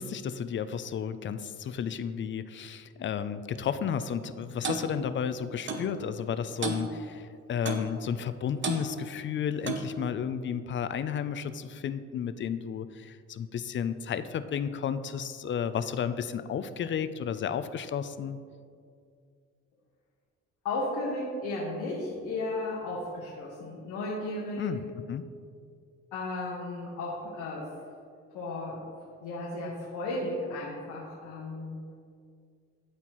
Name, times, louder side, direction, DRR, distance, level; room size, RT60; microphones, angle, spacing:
voice 1, 0.0-18.4 24.6-25.2, left 8 dB, 40° left, 12 dB, 0.4 m, -32 dB
Clock, 4.6-4.9 5.7-5.9 6.6-6.9 7.7-7.9 8.6-8.8 9.6-9.9, right 4 dB, 40° right, 0.8 m, -32 dB
voice 2, 20.6-24.7 26.1-27.7 28.3-28.8 29.2-31.8, left 2 dB, 85° left, -4 dB, 1.2 m, -34 dB
12.0 x 4.4 x 3.0 m, 2.3 s
cardioid pair, 90°, 30 cm